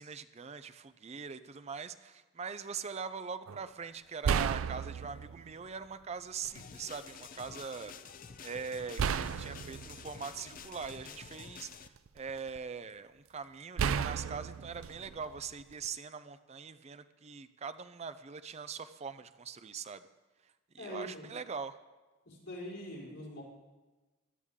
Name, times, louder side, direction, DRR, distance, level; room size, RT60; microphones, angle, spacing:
voice 1, 0.0-20.1 20.4-21.8, right 5 dB, 30° right, 12 dB, 0.5 m, -42 dB
sound 1, 3.5-3.6 4.2-5.5 6.4-6.6 9.0-11.2 11.7-12.6 13.8-15.9, right 7 dB, 90° right, 0.4 m, -34 dB
sound 2, 6.5-11.9, left 6 dB, 45° left, 0.5 m, -49 dB
voice 2, 20.8-21.3 22.2-23.4, equal, 85° left, -5 dB, 4.6 m, -43 dB
16.5 x 12.5 x 3.7 m, 1.2 s
head